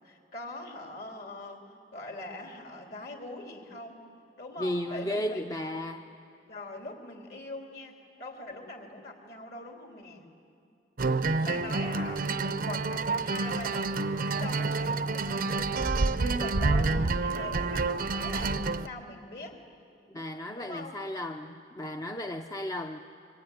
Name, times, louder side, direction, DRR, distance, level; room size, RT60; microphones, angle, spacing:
voice 1, 0.0-4.1 4.4-5.5 6.5-10.3 11.4-19.6 20.6-21.0, left 2 dB, 55° left, 1 dB, 3.6 m, -42 dB
voice 2, 4.6-6.1 20.1-23.0, left 1 dB, 20° left, 4 dB, 0.7 m, -34 dB
sound 1, 11.0-18.9, right 3 dB, 50° right, 0.6 m, -28 dB
26.0 x 24.5 x 9.3 m, 2.4 s
head